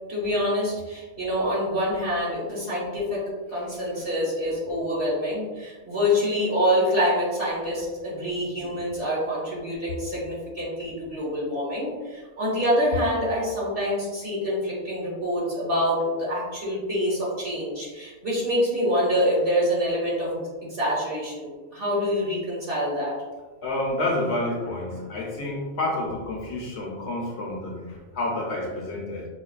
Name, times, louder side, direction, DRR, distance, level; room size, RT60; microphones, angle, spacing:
voice 1, 0.1-3.2 3.5-20.4 20.7-23.1, equal, 45° right, -6 dB, 1.5 m, -26 dB
voice 2, 23.6-29.3, left 1 dB, 65° left, -2 dB, 0.9 m, -29 dB
5.0 x 2.3 x 2.4 m, 1.3 s
omnidirectional pair, 1.3 m